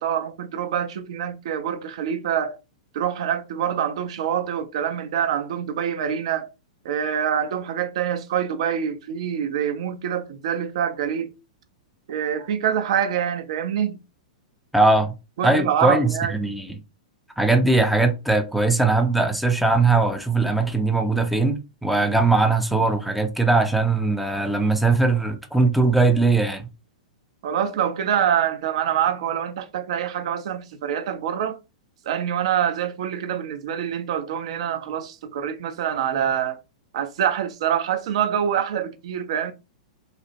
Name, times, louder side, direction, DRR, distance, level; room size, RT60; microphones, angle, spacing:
voice 1, 0.0-2.6 2.9-6.5 6.8-11.3 12.1-14.0 15.4-16.3 27.4-31.6 32.1-36.6 36.9-39.5, right 9 dB, 55° right, 0.5 m, -25 dB
voice 2, 14.7-15.2 15.4-16.7 17.4-26.7, right 3 dB, ahead, 0.4 m, -20 dB
3.1 x 2.0 x 2.8 m
figure-of-eight pair, 105°, 4 cm